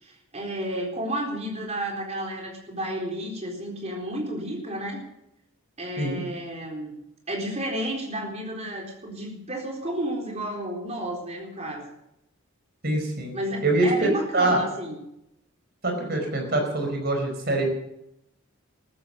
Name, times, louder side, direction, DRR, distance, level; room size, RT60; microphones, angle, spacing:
voice 1, 0.0-5.0 5.8-6.9 7.3-11.9 13.3-15.0, right 1 dB, 30° right, 1 dB, 4.0 m, -32 dB
voice 2, 12.8-13.3 13.6-14.1 14.3-14.6 15.8-17.7, right 2 dB, 45° right, 3 dB, 4.8 m, -24 dB
14.5 x 13.5 x 6.6 m, 0.83 s
head